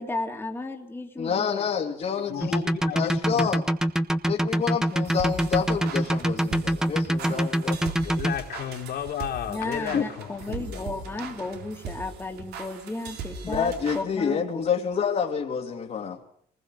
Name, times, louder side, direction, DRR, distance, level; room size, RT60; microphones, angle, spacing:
voice 1, 0.0-1.7 9.5-14.4, left 2 dB, 10° left, 2 dB, 2.7 m, -34 dB
voice 2, 1.2-2.5 2.9-3.6 4.2-7.9 9.9-10.1 13.4-16.2, left 7 dB, 45° left, -1 dB, 2.6 m, -28 dB
voice 3, 2.3-3.5 8.0-11.0, left 9 dB, 65° left, 1 dB, 3.6 m, -34 dB
sound 1, 2.4-8.3, right 1 dB, 5° right, 1.3 m, -24 dB
sound 2, 4.9-14.0, right 5 dB, 70° right, 3.7 m, -39 dB
23.5 x 20.0 x 6.5 m, 0.65 s
cardioid pair, 110°, 17 cm